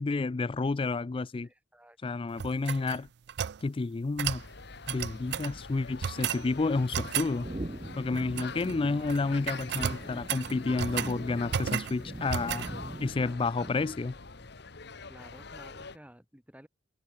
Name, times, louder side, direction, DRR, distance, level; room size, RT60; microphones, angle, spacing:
voice 1, 0.0-1.5 2.0-3.1 3.6-4.4 4.9-7.5 8.0-12.7 13.0-14.1, left 3 dB, 30° left, 0.4 m, -30 dB
voice 2, 1.4-2.0 12.4-12.7 13.2-13.5 15.1-16.7, equal, 5° right, 8.0 m, -53 dB
sound 1, 2.4-3.6 4.2-4.5 4.9-5.5 6.0-6.4 6.9-7.3 8.1-8.7 9.0-9.2 9.5-11.1 11.5-12.0 12.3-12.7, right 9 dB, 60° right, 0.4 m, -33 dB
sound 2, 4.3-16.0, left 4 dB, 60° left, 1.5 m, -45 dB
sound 3, 7.4-14.2, right 1 dB, 25° right, 0.8 m, -42 dB
head